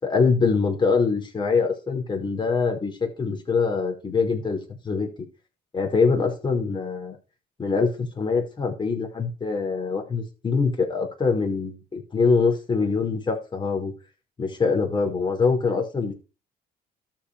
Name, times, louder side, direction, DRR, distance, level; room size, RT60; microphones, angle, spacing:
voice 1, 0.0-4.6 4.8-5.1 5.7-7.2 7.6-13.9 14.4-16.1, left 4 dB, 30° left, 4.9 m, -24 dB
13.0 x 5.6 x 4.9 m
cardioid pair, 110°, 17 cm